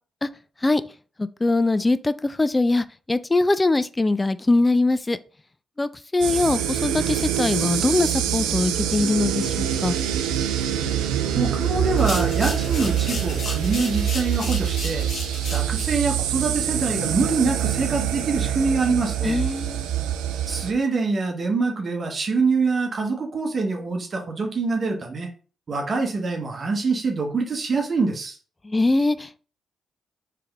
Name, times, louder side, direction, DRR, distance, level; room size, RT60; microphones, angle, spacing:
voice 1, 1.2-5.2 5.8-10.0 19.2-19.9 28.6-29.4, left 2 dB, 25° left, 0.4 m, -22 dB
sound 1, 6.2-20.7, right 10 dB, 85° right, 0.4 m, -25 dB
voice 2, 11.3-15.1 15.5-19.4 20.5-25.3 25.7-28.4, right 4 dB, 50° right, 1.0 m, -25 dB
sound 2, 11.9-16.0, left 3 dB, 60° left, 1.3 m, -34 dB
3.4 x 3.3 x 3.4 m
hypercardioid pair, 45°, 0 cm